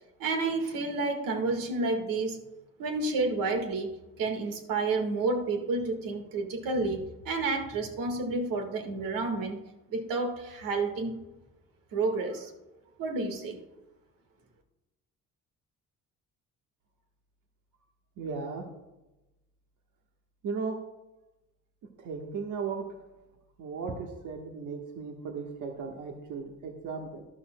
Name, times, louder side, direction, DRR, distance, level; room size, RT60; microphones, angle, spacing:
voice 1, 0.2-2.4 2.8-9.6 9.9-11.2 11.9-12.5 13.0-13.6, right 3 dB, 80° right, 5 dB, 1.7 m, -30 dB
voice 2, 18.2-18.6 20.4-20.8 22.0-22.8 23.6-27.2, right 5 dB, 65° right, 1 dB, 1.3 m, -36 dB
12.0 x 12.0 x 2.2 m, 1.0 s
cardioid pair, 120°, 33 cm